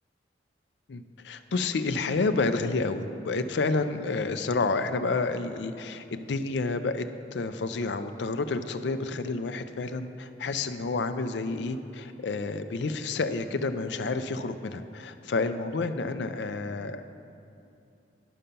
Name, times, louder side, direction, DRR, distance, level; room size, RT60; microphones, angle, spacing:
voice 1, 0.9-7.0 7.3-17.0, left 3 dB, 65° left, 9 dB, 0.5 m, -29 dB
11.0 x 5.6 x 5.3 m, 2.6 s
head